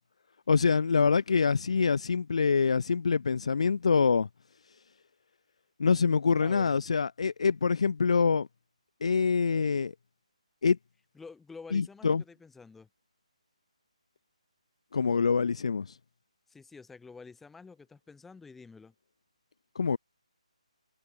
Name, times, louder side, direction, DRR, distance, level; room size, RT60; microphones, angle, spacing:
voice 1, 0.5-4.3 5.8-8.5 9.0-9.9 10.6-10.8 11.7-12.2 14.9-15.9 19.8-20.0, left 5 dB, 60° left, 0.7 m, -25 dB
voice 2, 6.4-6.8 11.1-12.9 16.5-18.9, left 4 dB, 5° left, 2.5 m, -49 dB
figure-of-eight pair, 150°, 4 cm